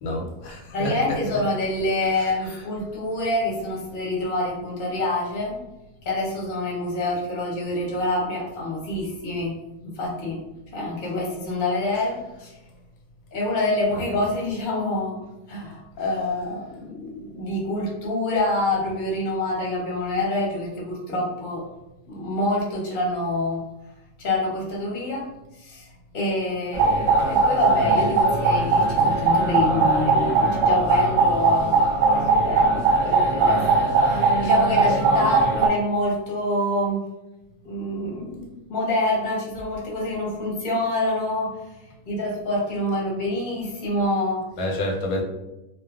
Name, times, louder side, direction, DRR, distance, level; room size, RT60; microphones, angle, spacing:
voice 1, 0.0-0.9 2.2-2.6 44.6-45.2, left 1 dB, 85° left, -1 dB, 1.2 m, -29 dB
voice 2, 0.7-5.6 6.0-9.5 9.8-10.4 10.7-12.5 13.3-15.2 15.5-21.6 22.1-23.6 24.2-25.2 25.6-25.9 26.1-31.8 32.1-37.1 37.6-41.6 42.1-44.5, left 1 dB, 40° left, -4 dB, 0.7 m, -26 dB
sound 1, 26.7-35.7, right 3 dB, 60° right, 0.9 m, -20 dB
2.6 x 2.5 x 2.3 m, 0.95 s
omnidirectional pair, 1.7 m